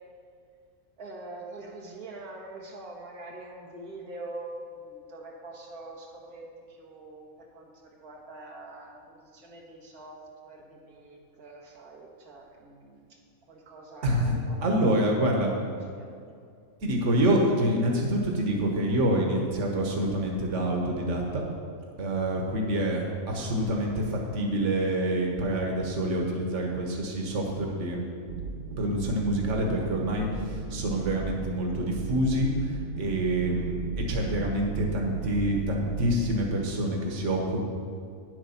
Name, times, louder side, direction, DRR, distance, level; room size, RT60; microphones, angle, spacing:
voice 1, 1.0-13.2 13.5-15.2 16.0-16.2 28.7-28.8, right 2 dB, 85° right, -2 dB, 1.9 m, -44 dB
voice 2, 14.0-15.5 16.8-21.4 22.0-28.0 28.8-37.6, right 1 dB, 55° right, 0 dB, 1.6 m, -27 dB
sound 1, 28.3-36.4, right 3 dB, 70° right, 1.0 m, -37 dB
10.0 x 7.9 x 5.8 m, 2.3 s
omnidirectional pair, 1.5 m